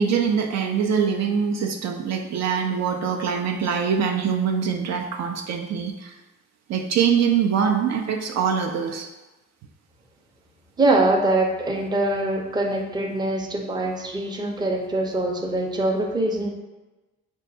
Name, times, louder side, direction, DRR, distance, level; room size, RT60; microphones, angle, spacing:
voice 1, 0.0-6.1 6.7-9.1, right 7 dB, 60° right, 3 dB, 0.4 m, -23 dB
voice 2, 10.8-16.5, right 2 dB, 15° right, 1 dB, 0.5 m, -23 dB
5.3 x 2.2 x 2.6 m, 1.1 s
cardioid pair, 90°, 30 cm